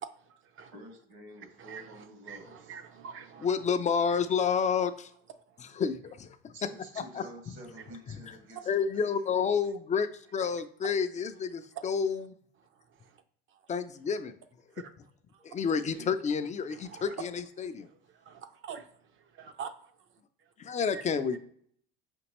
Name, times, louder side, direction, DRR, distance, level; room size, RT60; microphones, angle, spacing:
voice 1, 0.0-0.7 1.4-3.7 4.1-4.2 5.5-5.8 7.8-8.0 8.5-8.6 10.4-10.6 10.8-10.9 11.7-11.8 12.6-13.2 13.5-13.7 14.7-14.9 15.3-15.6 16.7-17.2 17.6-20.5 20.9-21.4, right 7 dB, 45° right, 0.6 m, -47 dB
voice 2, 0.7-2.8 6.5-9.3 15.4-16.2, right 1 dB, 65° right, 1.5 m, -50 dB
voice 3, 3.4-5.1 5.8-6.5 7.1-7.2 8.3-8.4 8.7-12.2 13.7-14.3 15.4-17.9 20.6-21.4, left 6 dB, 25° left, 0.4 m, -29 dB
5.2 x 2.8 x 3.0 m
hypercardioid pair, 80°, 29 cm